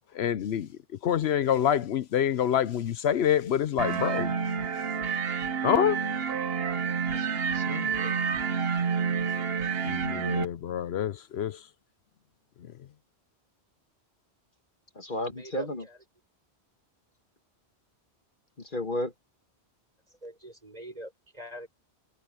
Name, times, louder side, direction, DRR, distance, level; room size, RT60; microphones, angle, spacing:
voice 1, 0.1-0.7 1.0-4.3 5.6-6.0 9.8-11.6, left 9 dB, 75° left, 0.9 m, -26 dB
sound 1, 3.8-10.5, right 6 dB, 65° right, 1.2 m, -29 dB
voice 2, 7.1-8.2 15.0-15.9 18.6-19.1, left 1 dB, 50° left, 1.8 m, -34 dB
voice 3, 20.2-21.7, equal, 35° right, 6.7 m, -43 dB
omnidirectional pair, 1.1 m